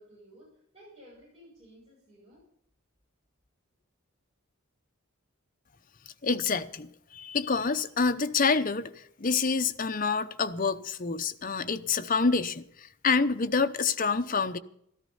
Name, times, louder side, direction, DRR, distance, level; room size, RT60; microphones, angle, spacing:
voice 1, 0.0-2.5, equal, 25° right, 7.9 m, -54 dB
voice 2, 6.2-14.6, left 4 dB, 40° left, 0.7 m, -27 dB
14.0 x 13.5 x 5.5 m
head